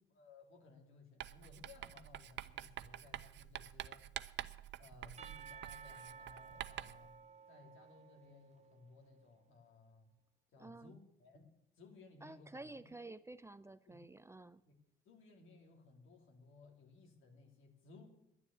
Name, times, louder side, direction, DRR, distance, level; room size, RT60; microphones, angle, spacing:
voice 1, 0.1-4.0 4.8-7.2 7.5-10.1 10.5-11.5 11.7-12.9 13.9-14.0 14.7-14.8 15.0-18.1, left 3 dB, 80° left, 2 dB, 3.1 m, -60 dB
Writing, 1.2-7.1, right 12 dB, 65° right, 0.6 m, -48 dB
Percussion / Church bell, 5.2-9.1, right 6 dB, 35° right, 0.8 m, -55 dB
voice 2, 10.6-10.9 12.2-14.6, right 2 dB, 15° right, 14 dB, 0.4 m, -51 dB
11.0 x 9.7 x 8.3 m, 0.80 s
cardioid pair, 90°, 20 cm